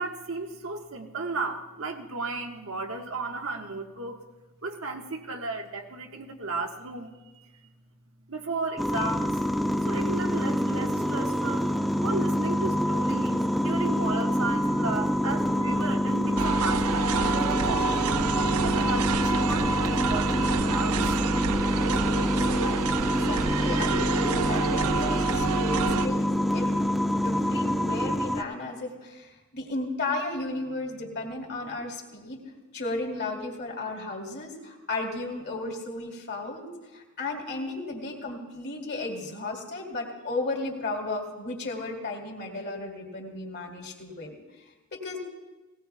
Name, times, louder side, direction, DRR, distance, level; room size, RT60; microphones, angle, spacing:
voice 1, 0.0-4.2 4.6-7.5 8.3-9.4 9.8-11.7 12.0-18.0 18.6-21.0, right 3 dB, 70° right, 3 dB, 1.3 m, -34 dB
sound 1, 8.8-28.4, equal, ahead, 0.4 m, -26 dB
sound 2, 16.4-26.1, right 6 dB, 85° right, 0.5 m, -29 dB
voice 2, 23.0-26.9 27.2-32.4 32.7-44.3 44.9-45.2, left 2 dB, 50° left, 0 dB, 2.4 m, -34 dB
19.0 x 18.0 x 2.3 m, 1.2 s
head